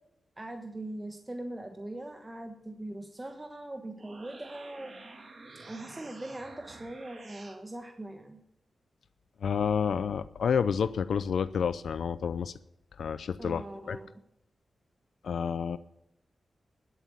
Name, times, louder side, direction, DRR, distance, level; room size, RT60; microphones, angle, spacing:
voice 1, 0.4-4.9 5.6-8.4 13.4-14.1, right 1 dB, 20° right, 4 dB, 1.2 m, -41 dB
sound 1, 3.8-7.6, right 3 dB, 45° right, 2.3 m, -49 dB
voice 2, 9.4-12.5 13.0-14.0 15.2-15.8, left 7 dB, 80° left, 14 dB, 0.4 m, -29 dB
12.5 x 7.9 x 8.6 m, 0.80 s
cardioid pair, 90°, 0 cm